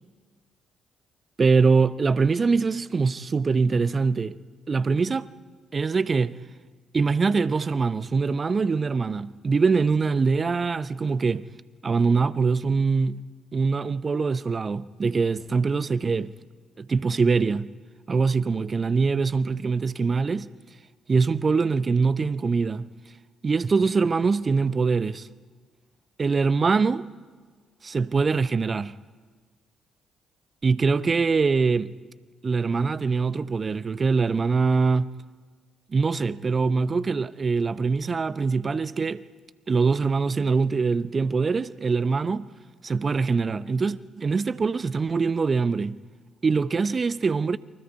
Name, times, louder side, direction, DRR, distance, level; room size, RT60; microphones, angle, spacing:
voice 1, 1.4-4.4 4.7-5.3 5.7-6.4 6.9-11.5 11.8-13.2 13.5-16.3 16.8-17.7 18.1-20.5 21.1-22.9 23.4-25.3 26.2-27.1 27.8-29.0 30.6-31.9 32.4-35.1 35.9-39.2 39.7-42.5 42.8-46.0 46.4-47.6, right 4 dB, 40° right, 0.7 m, -23 dB
30.0 x 24.0 x 4.7 m
figure-of-eight pair, 40°, 0 cm